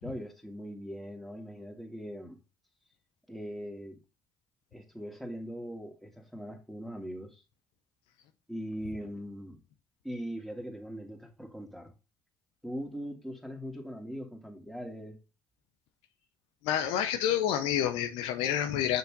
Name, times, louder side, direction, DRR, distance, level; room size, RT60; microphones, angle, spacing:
voice 1, 0.0-2.4 3.3-4.0 4.7-7.4 8.5-9.6 10.0-11.9 12.6-15.2, equal, ahead, 2.7 m, -40 dB
voice 2, 16.6-19.0, left 10 dB, 70° left, 0.9 m, -28 dB
6.8 x 6.8 x 3.8 m
hypercardioid pair, 50°, 10 cm